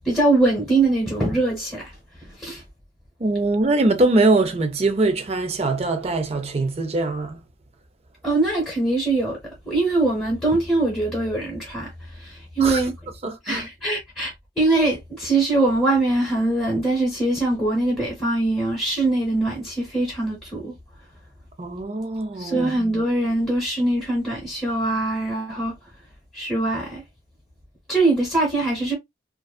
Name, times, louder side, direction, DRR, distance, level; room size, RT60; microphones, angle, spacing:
voice 1, 0.0-1.9 2.4-2.6 8.2-9.4 9.7-13.0 13.4-20.7 22.4-25.8 26.3-27.0 27.9-28.9, right 2 dB, 5° left, 0.9 m, -22 dB
voice 2, 3.2-7.4 12.6-12.8 13.2-13.7 21.6-22.7, right 2 dB, 35° right, 0.4 m, -22 dB
2.6 x 2.3 x 2.2 m
head